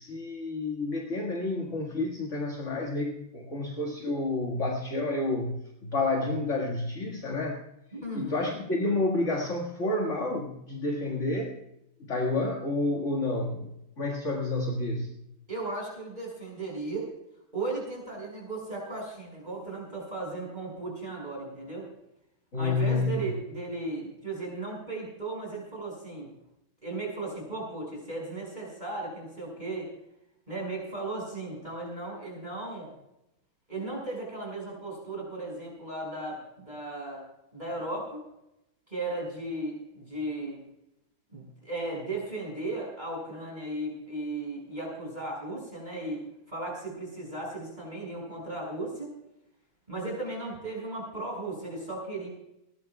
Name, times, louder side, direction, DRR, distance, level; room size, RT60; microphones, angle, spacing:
voice 1, 0.0-7.6 8.1-11.6 12.0-13.7 14.0-15.1 22.5-23.3, left 2 dB, 35° left, 0 dB, 2.1 m, -29 dB
voice 2, 7.9-8.6 15.5-17.1 17.5-21.9 22.6-26.3 26.8-29.9 30.5-32.9 33.7-37.2 37.5-38.2 38.9-40.6 41.3-49.1 49.9-52.3, right 2 dB, 20° right, -3 dB, 6.2 m, -36 dB
20.0 x 19.0 x 2.4 m, 0.85 s
omnidirectional pair, 2.2 m